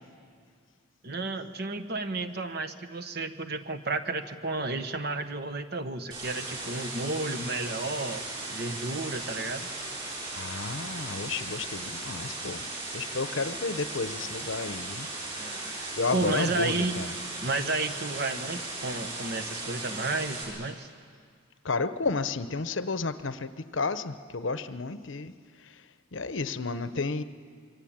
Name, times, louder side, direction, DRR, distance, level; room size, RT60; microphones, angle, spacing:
voice 1, 1.0-8.2 8.5-9.7 15.4-17.0 17.4-20.9, right 3 dB, 50° right, 10 dB, 1.2 m, -32 dB
sound 1, 6.1-20.4, right 2 dB, 25° right, 7.6 m, -37 dB
voice 2, 10.3-12.6 12.9-15.1 16.0-17.1 21.6-25.3 25.6-25.7 26.1-27.2, left 3 dB, 70° left, 12 dB, 0.9 m, -32 dB
26.0 x 23.5 x 8.9 m, 2.1 s
head